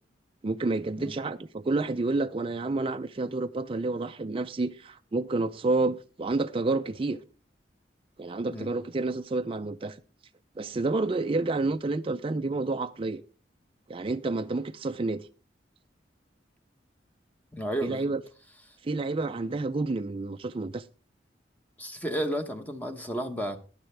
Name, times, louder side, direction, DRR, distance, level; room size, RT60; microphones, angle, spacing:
voice 1, 0.4-7.2 8.2-10.0 10.6-13.2 13.9-15.3 17.8-18.2 18.8-20.8, right 3 dB, 30° right, 0.4 m, -29 dB
voice 2, 17.5-18.1 18.7-18.8 21.8-23.6, right 1 dB, 10° left, 1.0 m, -32 dB
15.0 x 10.5 x 3.3 m
head